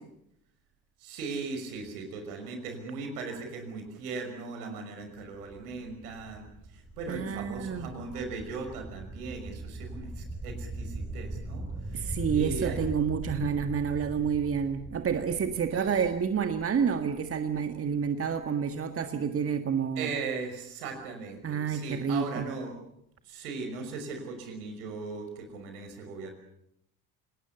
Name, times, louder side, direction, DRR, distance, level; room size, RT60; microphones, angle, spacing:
voice 1, 1.0-12.9 13.2-13.5 15.7-16.0 20.0-22.8 23.2-26.3, right 4 dB, 70° right, 6 dB, 5.9 m, -38 dB
sound 1, 5.2-18.7, right 1 dB, 10° right, 6.7 m, -41 dB
voice 2, 7.1-7.9 11.9-20.1 21.4-22.4, right 7 dB, 30° right, 8 dB, 1.8 m, -29 dB
29.5 x 19.0 x 7.0 m, 0.75 s
figure-of-eight pair, 65°, 46 cm